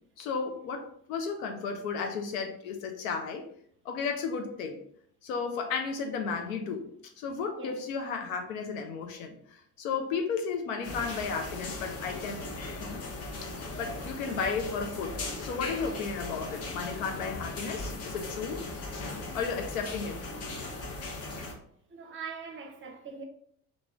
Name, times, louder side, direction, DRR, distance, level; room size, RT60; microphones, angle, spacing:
voice 1, 0.2-3.4 3.8-4.8 5.2-6.9 7.2-12.4 12.8-13.0 13.8-18.6 19.3-20.3, left 5 dB, 70° left, 0.7 m, -34 dB
sound 1, 10.8-21.5, left 2 dB, 35° left, 0.8 m, -38 dB
voice 2, 21.9-23.2, right 5 dB, 30° right, 0.7 m, -42 dB
2.9 x 2.8 x 3.4 m
figure-of-eight pair, 50°, 44 cm